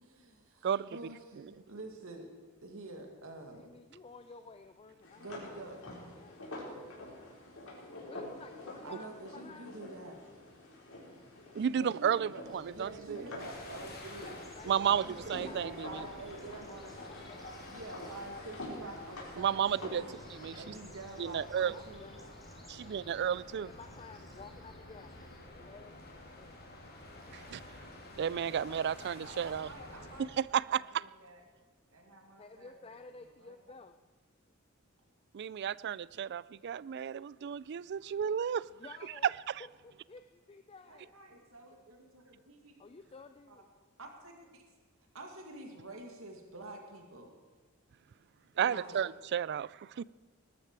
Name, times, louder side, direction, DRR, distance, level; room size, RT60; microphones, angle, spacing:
voice 1, 0.0-2.3 2.6-3.7 5.2-5.8 8.8-10.2 11.7-17.1 17.7-20.2 20.5-23.0 28.3-28.9 29.2-30.4 30.7-31.4 31.9-32.9 33.2-33.6 40.9-42.8 43.5-43.6 44.0-44.3 45.1-47.4 48.5-49.0, right 2 dB, 75° right, 2.1 m, -48 dB
voice 2, 0.6-1.0 11.5-13.2 14.7-15.0 15.3-16.0 19.4-20.0 20.3-20.7 21.2-21.7 22.7-23.7 27.3-27.6 28.2-29.7 30.4-31.0 35.3-38.7 39.2-39.3 48.6-50.0, right 8 dB, 55° right, 0.3 m, -32 dB
voice 3, 3.5-5.6 6.0-7.1 8.1-9.9 14.6-17.7 21.7-22.3 23.5-26.6 32.4-34.0 38.7-39.3 39.8-41.1 42.8-43.7 49.0-49.1, left 4 dB, 25° left, 0.5 m, -53 dB
sound 1, 5.0-20.6, left 1 dB, 85° left, 4.8 m, -48 dB
sound 2, 12.4-25.4, equal, ahead, 2.7 m, -61 dB
sound 3, 13.4-30.3, left 1 dB, 50° left, 3.0 m, -50 dB
20.0 x 12.5 x 4.7 m
head